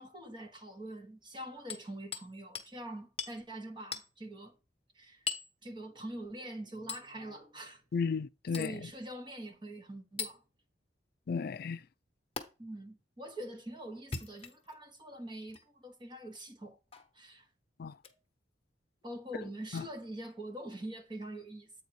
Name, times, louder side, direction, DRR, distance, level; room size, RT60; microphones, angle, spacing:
voice 1, 0.0-4.6 4.9-5.3 5.6-7.8 8.6-10.4 12.6-16.8 17.1-17.5 19.0-21.7, right 1 dB, 25° right, 1.3 m, -44 dB
Hammer, 1.7-2.3 2.6-2.7 3.2-3.4 3.9-4.1 5.3-5.5 6.9-7.1 8.5-8.8 10.2-10.4 12.4-12.5 14.0-14.8 15.5-15.6 16.9-17.1 18.0-18.2 19.7-19.8, left 6 dB, 35° left, 1.1 m, -40 dB
voice 2, 7.9-8.9 11.3-11.8 17.8-18.0 19.4-19.9, left 5 dB, 60° left, 0.4 m, -35 dB
8.4 x 4.0 x 4.7 m
head